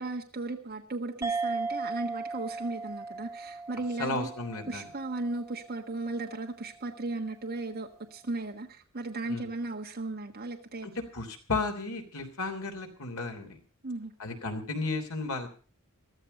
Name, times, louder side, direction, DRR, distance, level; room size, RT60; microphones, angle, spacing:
voice 1, 0.0-4.3 4.7-10.9 13.8-14.1, right 2 dB, 45° right, 2 dB, 1.4 m, -36 dB
sound 1, 1.2-6.1, right 4 dB, 15° right, 1.4 m, -37 dB
voice 2, 4.0-4.9 9.3-9.5 10.8-13.6 14.2-15.5, left 3 dB, 80° left, 5 dB, 3.3 m, -34 dB
14.5 x 13.5 x 5.4 m, 0.40 s
head